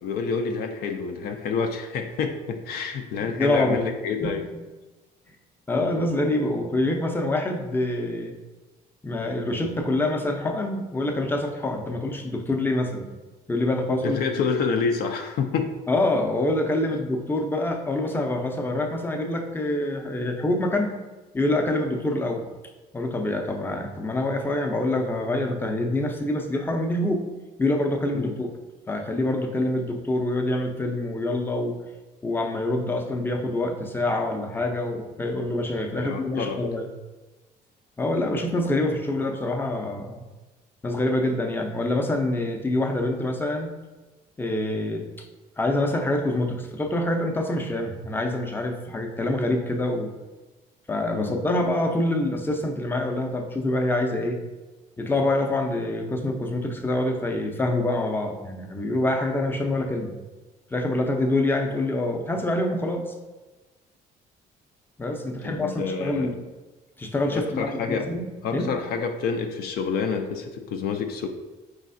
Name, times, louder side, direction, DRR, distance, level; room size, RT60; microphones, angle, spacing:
voice 1, 0.0-4.4 14.0-15.7 28.1-28.4 35.9-36.6 51.1-51.4 65.4-66.3 67.3-68.1 68.4-71.3, left 5 dB, 65° left, 5 dB, 0.4 m, -28 dB
voice 2, 3.2-3.8 4.2-4.3 5.7-8.3 9.0-13.1 13.5-14.2 15.9-20.9 21.3-22.5 22.9-27.2 27.6-28.5 28.9-31.8 32.2-36.9 38.0-40.2 40.8-43.7 44.4-45.0 45.6-50.1 50.9-54.4 55.0-60.1 60.7-63.0 65.0-66.3 67.0-68.3 68.5-68.7, left 1 dB, 10° left, 3 dB, 0.5 m, -26 dB
4.8 x 3.2 x 2.5 m, 1.2 s
cardioid pair, 110°, 17 cm